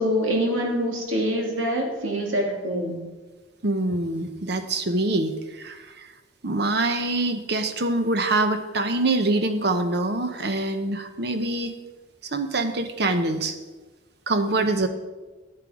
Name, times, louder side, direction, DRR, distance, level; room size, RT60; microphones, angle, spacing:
voice 1, 0.0-3.0, equal, 80° right, 1 dB, 2.3 m, -25 dB
voice 2, 3.6-6.1 6.4-11.7 12.2-13.6 14.3-14.9, right 2 dB, 55° right, 8 dB, 0.9 m, -25 dB
11.0 x 8.7 x 4.9 m, 1.2 s
head